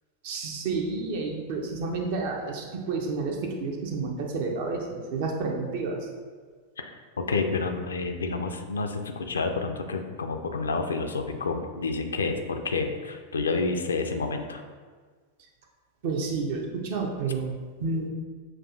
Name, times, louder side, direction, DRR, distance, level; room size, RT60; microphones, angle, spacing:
voice 1, 0.2-6.1 16.0-18.1, right 4 dB, 50° right, 1 dB, 0.6 m, -30 dB
voice 2, 6.8-14.6, left 3 dB, 70° left, 6 dB, 0.3 m, -29 dB
6.1 x 2.3 x 2.5 m, 1.5 s
figure-of-eight pair, 90°, 0 cm